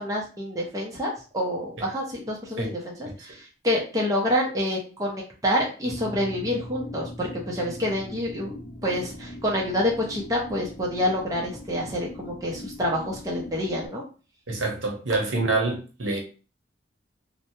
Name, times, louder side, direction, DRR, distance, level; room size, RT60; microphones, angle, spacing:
voice 1, 0.0-8.5 8.8-14.0, left 1 dB, 15° right, 0.6 m, -27 dB
sound 1, 5.8-13.9, left 1 dB, 75° left, 0.6 m, -41 dB
voice 2, 14.5-16.2, right 3 dB, 75° right, 0.8 m, -26 dB
2.9 x 2.1 x 2.7 m
head